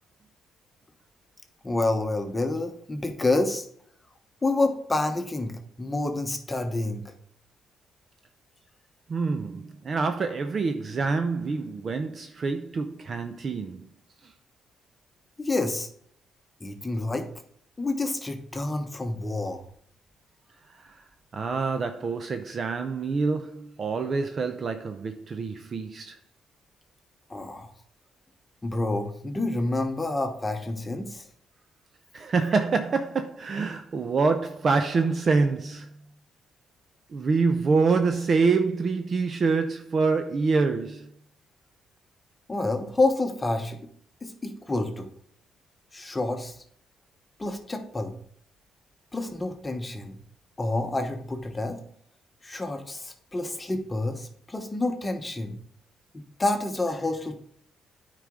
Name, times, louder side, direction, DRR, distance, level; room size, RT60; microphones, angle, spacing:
voice 1, 1.6-3.6 4.4-7.0 15.4-15.9 16.6-17.3 17.8-19.6 27.3-27.7 28.6-31.3 42.5-43.8 44.2-45.1 45.9-46.5 47.4-48.2 49.1-50.2 50.6-51.8 52.4-55.6 56.4-57.4, left 2 dB, 20° left, 1.1 m, -28 dB
voice 2, 9.1-13.9 20.7-21.0 21.3-26.2 32.1-35.9 37.1-41.1, right 4 dB, 45° right, 0.6 m, -26 dB
9.1 x 4.9 x 3.7 m
cardioid pair, 90°, 0 cm